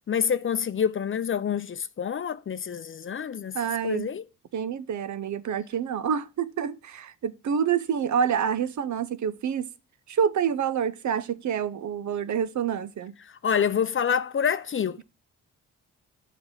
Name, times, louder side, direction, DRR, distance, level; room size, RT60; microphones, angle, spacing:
voice 1, 0.1-3.6 3.8-4.2 13.4-15.0, left 7 dB, 35° left, 0.6 m, -27 dB
voice 2, 3.5-4.1 4.5-9.7 10.1-13.1, right 7 dB, 55° right, 0.8 m, -27 dB
7.8 x 5.4 x 5.6 m
supercardioid pair, 60°, 34 cm